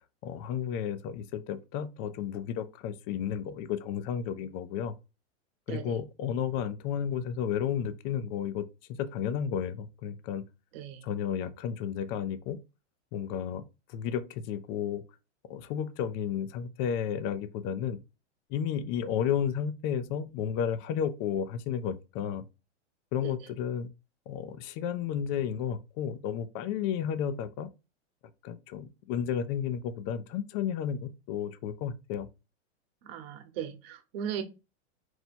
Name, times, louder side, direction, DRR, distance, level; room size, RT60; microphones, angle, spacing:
voice 1, 0.2-4.9 5.7-8.7 9.0-10.4 11.0-12.6 13.1-13.6 13.9-15.0 15.5-18.0 18.5-22.4 23.1-23.9 24.3-27.7 28.4-32.3, left 8 dB, 30° left, 0.4 m, -32 dB
voice 2, 33.0-34.4, right 9 dB, 55° right, 1.1 m, -37 dB
4.3 x 2.2 x 4.2 m
hypercardioid pair, 135°, 36 cm